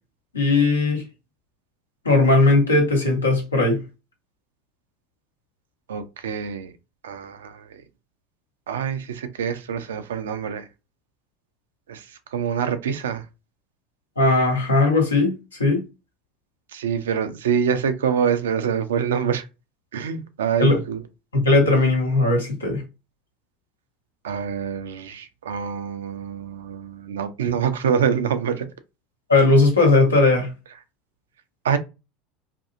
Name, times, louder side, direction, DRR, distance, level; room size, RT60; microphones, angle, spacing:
voice 1, 0.3-1.0 2.0-3.8 14.2-15.3 15.6-15.8 20.6-20.8 21.3-22.8 29.3-30.5, left 2 dB, 85° left, 0.9 m, -18 dB
voice 2, 5.9-6.7 7.0-7.8 8.7-10.7 11.9-12.0 12.3-13.2 16.7-19.4 19.9-21.0 24.2-28.7 31.6-31.8, right 7 dB, 75° right, 0.4 m, -25 dB
2.6 x 2.6 x 2.5 m
figure-of-eight pair, 75°, 0 cm